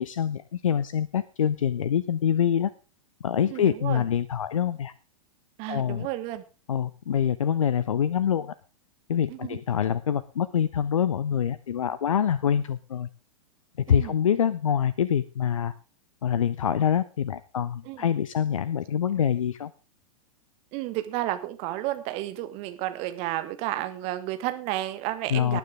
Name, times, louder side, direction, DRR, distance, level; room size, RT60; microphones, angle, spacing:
voice 1, 0.0-2.7 3.2-4.9 5.7-6.1 6.7-8.5 9.1-13.1 13.9-15.7 16.2-19.7 25.3-25.6, left 8 dB, 65° left, 18 dB, 0.6 m, -25 dB
voice 2, 3.5-4.0 5.6-6.4 9.3-9.6 13.9-14.2 17.8-18.0 20.7-25.6, right 15 dB, 35° right, 10 dB, 1.6 m, -32 dB
19.0 x 9.5 x 3.7 m, 0.32 s
figure-of-eight pair, 100°, 18 cm